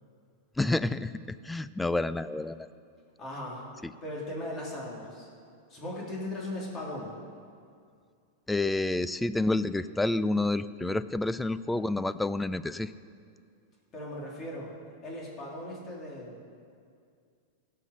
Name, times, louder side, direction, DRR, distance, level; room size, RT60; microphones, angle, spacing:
voice 1, 0.6-2.7 3.8-3.9 8.5-12.9, left 2 dB, 5° left, 15 dB, 0.3 m, -29 dB
voice 2, 3.2-3.6 4.0-5.3 5.7-7.1 13.9-14.7 15.0-16.5, left 1 dB, 30° left, -4 dB, 3.4 m, -38 dB
16.5 x 5.7 x 6.7 m, 2.3 s
hypercardioid pair, 120°, 0 cm